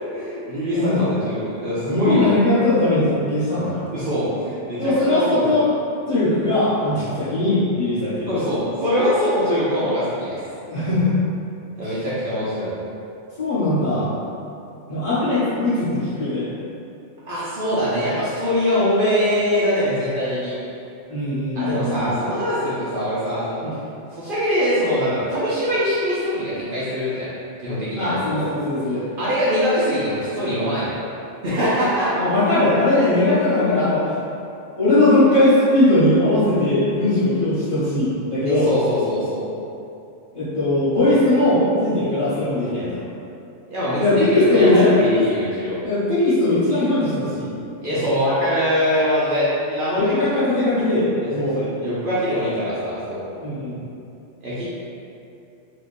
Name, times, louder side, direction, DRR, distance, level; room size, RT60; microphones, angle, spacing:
voice 1, 0.0-2.3 3.9-5.5 8.3-10.4 11.8-12.7 17.2-20.6 21.5-23.6 24.1-27.3 27.6-28.4 29.2-31.0 31.4-32.2 33.0-33.1 38.4-39.4 43.7-45.8 47.8-50.1 51.2-53.2 54.4-54.6, equal, 50° right, -11 dB, 0.7 m, -23 dB
voice 2, 0.7-1.0 1.8-3.9 4.8-5.7 6.1-8.3 10.7-11.2 11.8-11.9 13.4-14.1 14.9-16.5 21.1-22.1 23.6-23.8 28.0-29.1 32.1-34.2 34.8-38.7 40.3-43.0 44.0-44.9 45.8-47.5 49.9-51.6 53.4-53.8, left 2 dB, 30° left, -14 dB, 1.0 m, -19 dB
3.5 x 2.8 x 2.6 m, 2.7 s
omnidirectional pair, 1.3 m